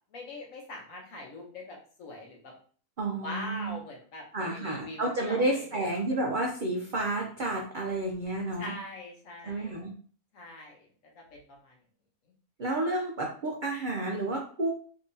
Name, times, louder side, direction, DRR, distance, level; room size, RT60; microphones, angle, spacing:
voice 1, 0.1-2.5 3.2-5.9 8.6-9.8 10.3-10.9 11.1-11.7, left 2 dB, 60° left, -1 dB, 1.3 m, -42 dB
voice 2, 3.0-3.8 4.3-8.7 9.4-9.9 12.6-14.7, right 2 dB, 65° right, -1 dB, 0.4 m, -30 dB
3.5 x 2.8 x 2.7 m, 0.44 s
omnidirectional pair, 1.6 m